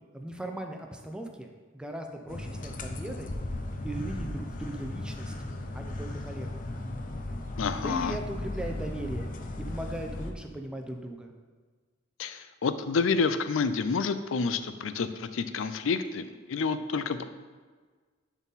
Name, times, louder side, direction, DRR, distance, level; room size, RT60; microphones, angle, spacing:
voice 1, 0.1-1.5 1.7-3.3 3.8-5.3 5.7-6.6 7.7-9.3 9.7-11.3, right 1 dB, 5° right, 3 dB, 0.6 m, -38 dB
sound 1, 2.3-10.3, left 1 dB, 45° left, 0.6 m, -36 dB
voice 2, 7.6-8.2 12.2-17.2, left 5 dB, 90° left, 11 dB, 0.5 m, -29 dB
11.0 x 4.1 x 4.0 m, 1.5 s
head